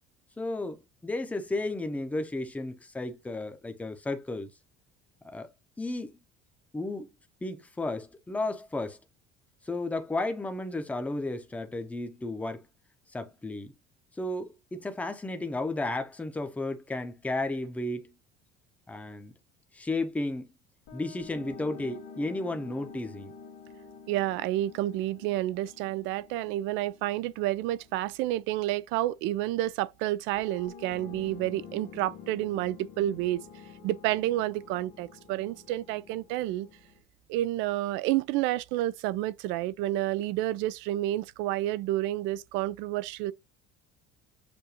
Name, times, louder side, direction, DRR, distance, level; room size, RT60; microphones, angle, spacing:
voice 1, 0.4-4.5 5.2-5.5 5.8-6.2 6.7-7.1 7.4-9.0 9.6-12.7 13.1-13.7 14.2-18.1 18.9-19.3 19.7-20.5 20.9-23.3, left 2 dB, 5° left, 0.7 m, -33 dB
sound 1, 20.9-29.0 30.3-37.0, left 5 dB, 55° left, 1.6 m, -49 dB
voice 2, 24.1-33.4 33.8-36.7 37.3-43.3, right 15 dB, 65° right, 0.5 m, -30 dB
6.9 x 2.6 x 2.9 m
cardioid pair, 160°, 20 cm